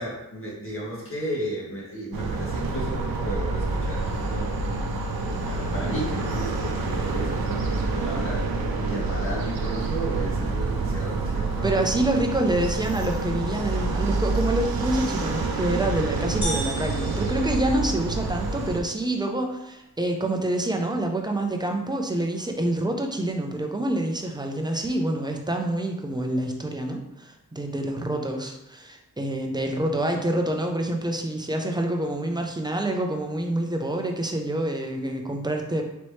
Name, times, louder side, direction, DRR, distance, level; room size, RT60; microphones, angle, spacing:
voice 1, 0.0-4.7 5.4-11.7, right 1 dB, 40° left, -4 dB, 1.5 m, -34 dB
sound 1, 2.1-18.8, right 3 dB, 90° right, 0.6 m, -27 dB
voice 2, 11.6-35.8, right 1 dB, 10° right, 3 dB, 0.5 m, -27 dB
sound 2, 16.4-18.4, right 1 dB, 55° left, 1.3 m, -34 dB
4.2 x 3.0 x 3.1 m, 0.87 s
wide cardioid pair, 95°, 35 cm